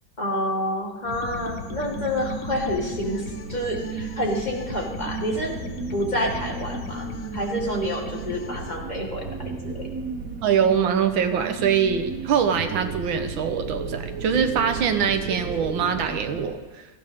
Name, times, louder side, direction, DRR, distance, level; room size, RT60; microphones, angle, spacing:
voice 1, 0.2-5.5 5.9-9.9, equal, 20° left, 0 dB, 2.1 m, -28 dB
sound 1, 1.0-16.4, right 4 dB, 50° right, 1.6 m, -34 dB
sound 2, 1.1-8.8, left 4 dB, 50° left, 1.3 m, -39 dB
voice 2, 10.4-16.6, right 7 dB, 90° right, 8 dB, 1.9 m, -23 dB
18.0 x 14.5 x 3.7 m, 1.3 s
omnidirectional pair, 2.1 m